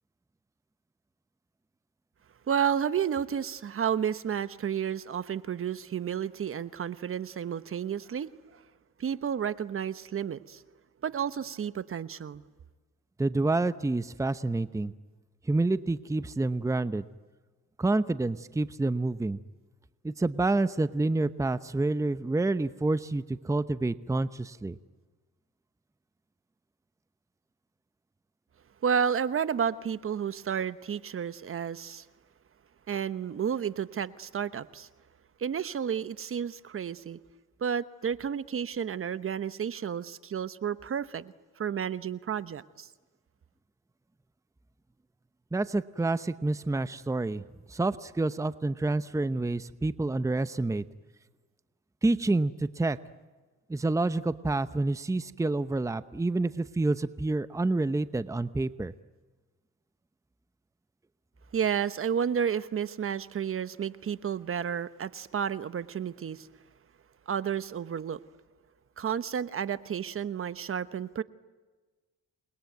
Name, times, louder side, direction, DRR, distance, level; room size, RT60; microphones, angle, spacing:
voice 1, 2.5-8.6 9.0-10.6 11.0-12.4 28.8-32.0 32.9-34.9 35.4-37.2 37.6-42.9 61.5-66.5 67.3-68.2 69.0-71.2, right 8 dB, 45° right, 1.1 m, -31 dB
voice 2, 13.2-14.9 15.5-17.0 17.8-19.4 20.0-24.7 45.5-47.4 47.7-50.8 52.0-53.0 53.7-58.9, right 2 dB, 10° right, 0.8 m, -28 dB
28.5 x 21.0 x 9.4 m
cardioid pair, 90°, 30 cm